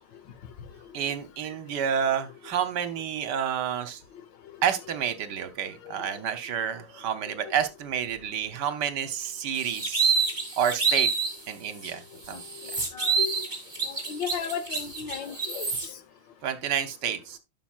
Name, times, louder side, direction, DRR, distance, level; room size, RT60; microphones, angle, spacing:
voice 1, 0.9-4.0 4.6-10.1 10.6-11.1 11.5-12.4 16.4-17.4, right 8 dB, 70° right, 1.4 m, -29 dB
sound 1, 9.5-11.4 11.8-11.9 12.3-15.9, right 5 dB, 25° right, 2.5 m, -27 dB
voice 2, 12.9-13.4 13.9-15.7, left 7 dB, 75° left, 1.6 m, -34 dB
11.5 x 5.9 x 2.4 m
omnidirectional pair, 2.0 m